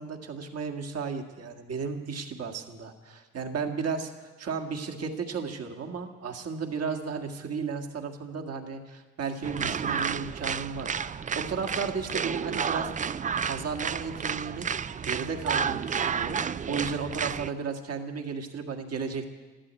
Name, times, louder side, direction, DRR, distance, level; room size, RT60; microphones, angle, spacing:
voice 1, 0.0-12.9 13.4-14.7 15.0-16.4 16.7-19.3, right 5 dB, 55° right, 3 dB, 1.9 m, -34 dB
sound 1, 9.4-17.5, right 6 dB, 25° right, 0.4 m, -31 dB
13.5 x 12.5 x 8.3 m, 1.3 s
cardioid pair, 90°, 30 cm